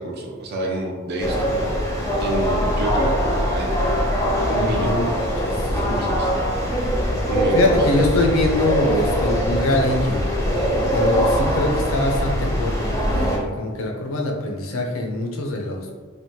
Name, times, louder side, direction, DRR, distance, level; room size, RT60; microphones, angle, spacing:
voice 1, 0.0-1.6 2.2-3.2 3.5-3.7 4.5-5.1 5.7-6.3 7.3-7.7, right 1 dB, 50° right, 0 dB, 0.4 m, -28 dB
sound 1, 1.2-13.4, equal, 15° left, 0.5 m, -22 dB
voice 2, 4.7-5.0 5.4-5.5 5.8-6.0 7.5-10.3 10.9-15.9, left 2 dB, 80° left, 2 dB, 0.5 m, -23 dB
3.3 x 2.1 x 2.7 m, 1.5 s
head